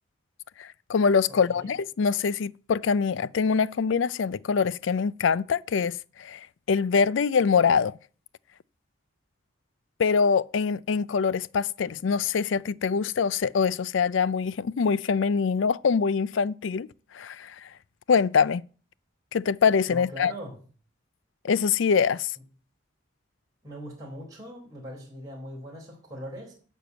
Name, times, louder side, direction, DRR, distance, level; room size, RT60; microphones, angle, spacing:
voice 1, 0.6-8.0 10.0-16.9 17.1-17.7 18.1-18.6 19.3-20.3 21.4-22.3, left 6 dB, 65° left, 0.4 m, -24 dB
voice 2, 19.9-20.6 23.6-26.5, equal, 20° right, 4.1 m, -40 dB
12.0 x 4.6 x 8.1 m
head